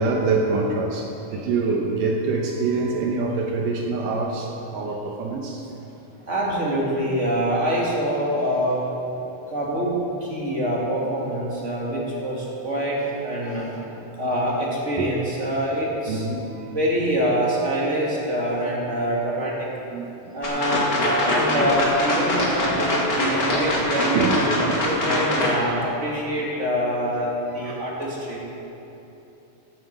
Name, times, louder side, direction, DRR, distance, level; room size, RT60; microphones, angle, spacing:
voice 1, 0.0-5.7 9.2-9.3 9.7-9.8 13.9-14.0 15.0-15.1 16.1-16.6 19.9-20.4 21.1-21.2 22.7-22.8 24.1-24.9 27.5-27.8, right 3 dB, 75° right, 1 dB, 2.4 m, -25 dB
voice 2, 6.3-8.8 9.5-13.7 14.2-16.3 16.7-19.7 20.3-24.3 24.8-28.4, equal, 25° right, -4 dB, 2.2 m, -25 dB
sound 1, 20.4-25.5, left 1 dB, 35° left, 2.3 m, -23 dB
11.5 x 9.4 x 8.3 m, 3.0 s
omnidirectional pair, 4.1 m